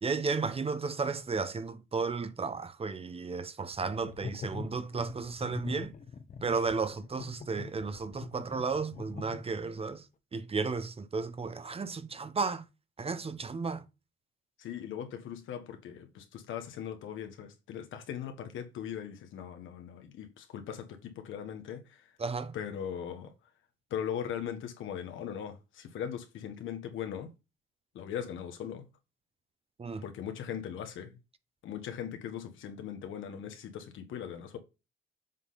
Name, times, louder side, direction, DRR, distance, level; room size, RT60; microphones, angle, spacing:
voice 1, 0.0-5.9 6.4-10.0 10.3-12.6 13.0-13.8 22.2-22.5 29.8-30.0, right 4 dB, 30° right, 0.8 m, -33 dB
sound 1, 3.7-9.8, left 5 dB, 40° left, 1.1 m, -44 dB
voice 2, 14.6-22.1 22.5-23.3 23.9-27.3 27.9-28.8 30.0-31.2 31.6-34.6, left 9 dB, 80° left, 1.5 m, -39 dB
7.4 x 3.8 x 4.1 m
cardioid pair, 90°, 20 cm